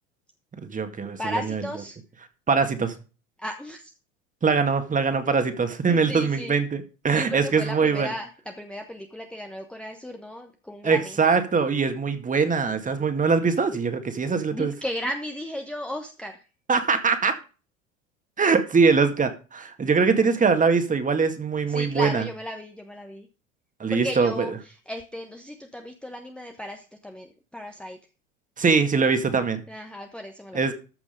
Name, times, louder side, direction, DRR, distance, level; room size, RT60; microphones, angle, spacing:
voice 1, 0.6-1.6 2.5-2.9 4.4-8.1 10.8-14.7 16.7-17.4 18.4-22.2 23.8-24.5 28.6-29.6 30.5-30.7, right 5 dB, 20° right, 2.0 m, -22 dB
voice 2, 1.2-2.0 3.4-3.9 5.9-6.6 7.1-11.2 14.5-16.4 21.7-23.3 23.9-28.0 29.7-30.7, equal, 5° left, 1.1 m, -35 dB
14.0 x 6.1 x 5.3 m
hypercardioid pair, 85°, 39 cm